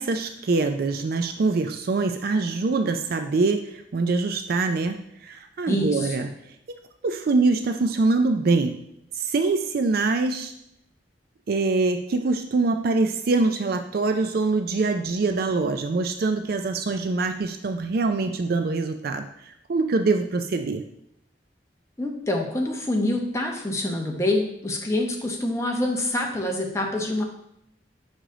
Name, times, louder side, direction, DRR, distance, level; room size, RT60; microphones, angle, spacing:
voice 1, 0.0-6.3 7.0-8.8 9.2-10.5 11.5-20.8, right 3 dB, 55° right, 7 dB, 0.4 m, -24 dB
voice 2, 5.7-6.1 22.0-27.2, left 1 dB, 15° left, 0 dB, 1.0 m, -26 dB
6.4 x 4.9 x 3.8 m, 0.77 s
head